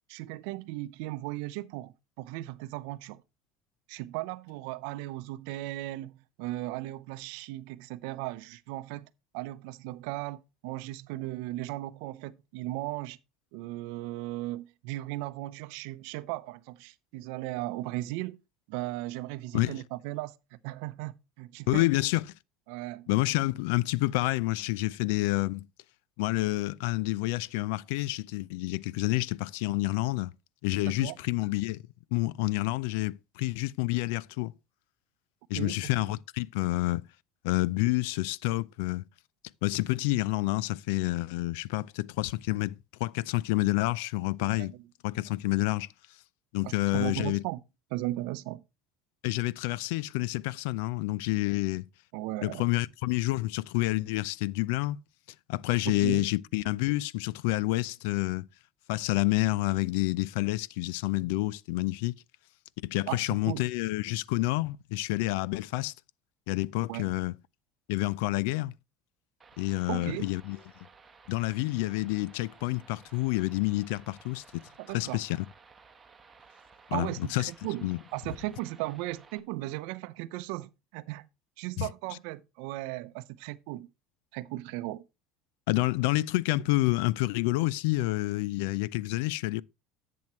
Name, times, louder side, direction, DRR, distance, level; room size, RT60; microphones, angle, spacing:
voice 1, 0.1-3.2 3.9-9.1 9.3-13.2 13.5-18.4 18.7-21.9 22.7-23.1 30.8-31.2 35.5-36.1 44.5-44.7 46.6-47.6 47.9-48.6 52.1-52.6 55.8-56.3 63.1-63.2 63.5-63.6 66.9-67.0 69.9-70.3 74.8-75.2 76.9-81.3 81.6-83.9 84.3-85.0, right 18 dB, 75° right, 0.6 m, -37 dB
voice 2, 21.7-22.2 23.1-25.7 26.2-30.3 30.6-31.8 32.1-34.5 35.5-37.0 37.4-39.0 39.6-44.7 45.0-45.9 46.5-47.4 49.2-51.8 52.4-55.0 55.5-58.4 58.9-62.2 62.8-65.9 66.5-67.3 67.9-68.7 69.6-70.6 71.3-74.6 74.9-75.4 76.9-77.5 77.8-78.0 81.8-81.9 85.7-89.6, left 19 dB, 85° left, 0.4 m, -28 dB
sound 1, 69.4-79.4, right 5 dB, 15° right, 1.1 m, -56 dB
10.5 x 7.8 x 3.0 m
cardioid pair, 160°, 0 cm